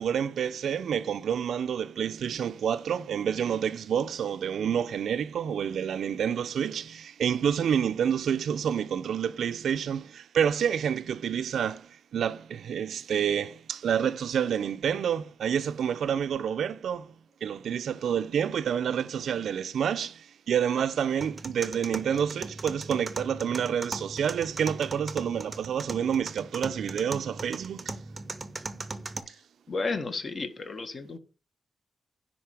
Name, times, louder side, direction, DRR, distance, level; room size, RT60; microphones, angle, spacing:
voice 1, 0.0-17.1 17.4-28.0, right 8 dB, 75° right, 0.6 m, -28 dB
sound 1, 21.2-29.2, right 3 dB, 25° right, 0.8 m, -39 dB
voice 2, 29.7-31.2, left 3 dB, 35° left, 1.5 m, -32 dB
10.5 x 4.3 x 7.6 m
wide cardioid pair, 165°, 0 cm